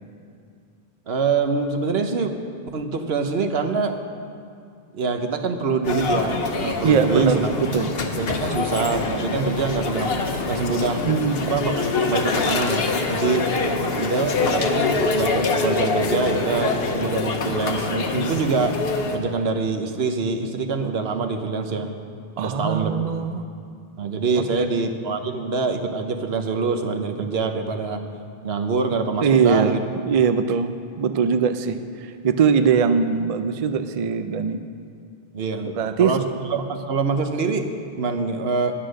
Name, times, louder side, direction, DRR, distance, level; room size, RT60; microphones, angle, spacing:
voice 1, 1.1-2.3 2.7-4.0 4.9-7.5 8.2-10.1 10.5-11.1 11.4-11.7 12.0-13.5 14.0-18.8 19.1-21.9 22.4-23.0 24.0-28.0 28.4-29.8 35.3-36.2 36.5-37.7 38.0-38.7, right 4 dB, 75° right, 6 dB, 1.1 m, -25 dB
sound 1, 5.8-19.2, left 3 dB, 70° left, 1.1 m, -25 dB
voice 2, 6.8-7.9 11.0-11.5 13.6-14.1 22.4-23.4 24.6-24.7 29.2-30.7 31.0-34.6 35.8-36.1, right 6 dB, 45° right, 8 dB, 0.5 m, -21 dB
10.0 x 9.8 x 6.4 m, 2.4 s
omnidirectional pair, 1.0 m